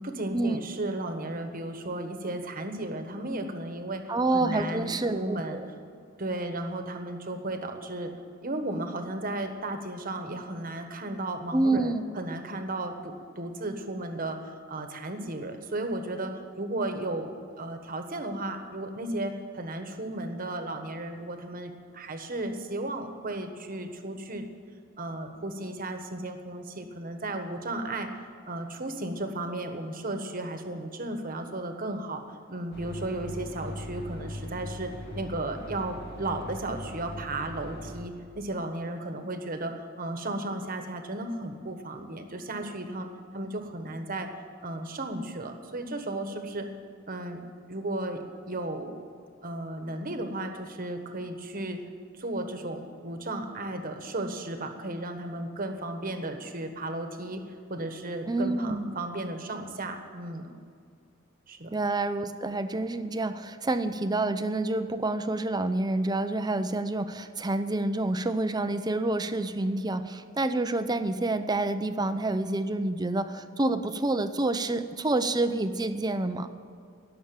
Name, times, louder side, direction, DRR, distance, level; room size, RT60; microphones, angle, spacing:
voice 1, 0.0-4.0 4.3-5.6 6.2-8.1 8.4-24.5 25.0-28.1 28.5-32.2 32.5-43.1 43.3-44.3 44.6-46.7 47.1-47.4 47.7-49.0 49.4-51.8 52.2-57.4 57.7-60.5 61.5-61.7, right 2 dB, 45° right, 6 dB, 1.4 m, -34 dB
voice 2, 4.1-5.7 11.5-12.0 58.3-58.9 61.7-76.5, right 2 dB, 20° right, 10 dB, 0.7 m, -28 dB
sound 1, 32.7-38.0, left 1 dB, 55° left, 2.0 m, -40 dB
18.0 x 7.0 x 8.9 m, 2.3 s
head